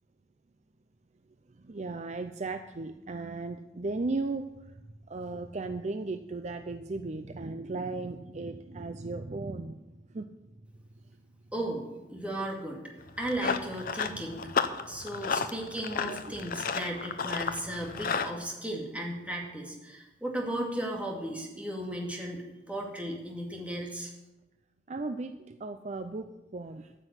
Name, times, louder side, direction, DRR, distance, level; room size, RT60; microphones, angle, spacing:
voice 1, 1.5-4.7 5.1-10.3 16.0-16.3 24.9-26.9, right 3 dB, 40° right, 8 dB, 0.5 m, -36 dB
voice 2, 11.5-12.8 13.2-14.5 14.9-24.1, right 1 dB, 10° right, -1 dB, 2.3 m, -35 dB
Run, 13.0-18.3, left 5 dB, 55° left, 0.7 m, -33 dB
14.0 x 6.1 x 8.2 m, 1.1 s
head